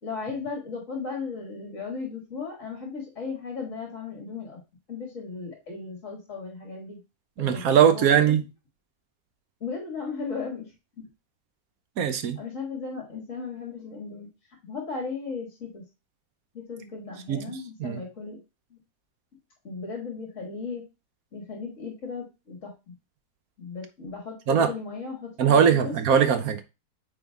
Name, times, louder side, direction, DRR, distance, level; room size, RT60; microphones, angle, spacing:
voice 1, 0.0-4.6 4.9-7.0 7.4-8.4 9.6-10.7 12.4-14.3 14.6-15.8 16.5-18.4 18.7-18.8 19.6-20.8 21.3-22.9 23.6-25.9, left 4 dB, 50° left, 2.1 m, -36 dB
voice 2, 7.4-8.4 12.0-12.4 17.3-17.4 17.8-18.0 24.5-24.7 25.4-26.6, right 8 dB, 65° right, 1.1 m, -20 dB
9.2 x 3.5 x 3.5 m
omnidirectional pair, 1.8 m